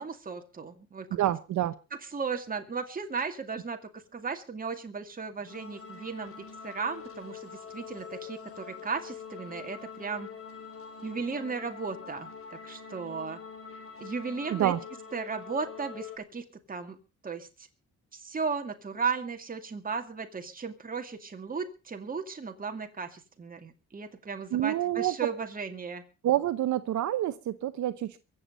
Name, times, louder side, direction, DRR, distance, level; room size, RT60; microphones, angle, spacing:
voice 1, 0.0-1.3 2.0-3.8 4.1-6.3 6.6-10.3 11.0-13.4 14.0-14.7 15.1-17.0 17.2-17.5 18.1-26.0, right 5 dB, 30° right, 5 dB, 2.3 m, -35 dB
voice 2, 1.1-1.7 14.5-14.8 24.5-25.1 26.2-28.2, right 13 dB, 70° right, 13 dB, 0.9 m, -27 dB
sound 1, 5.5-16.2, left 6 dB, 45° left, 3.8 m, -44 dB
23.0 x 7.9 x 5.3 m, 0.33 s
cardioid pair, 90°, 30 cm